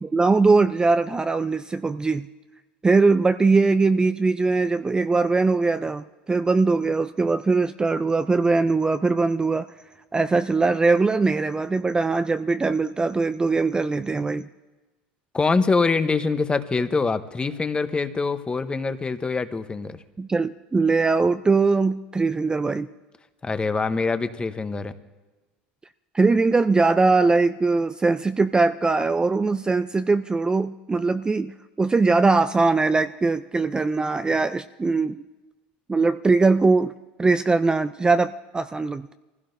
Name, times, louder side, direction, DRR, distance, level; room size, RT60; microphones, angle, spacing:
voice 1, 0.0-2.3 2.8-9.7 10.1-14.5 20.2-22.9 26.1-35.2 35.9-36.9 37.2-39.1, right 3 dB, 15° right, 11 dB, 0.4 m, -21 dB
voice 2, 15.3-20.0 23.4-24.9, left 4 dB, 20° left, 10 dB, 1.0 m, -24 dB
23.5 x 16.0 x 2.7 m, 1.2 s
supercardioid pair, 90°, 5 cm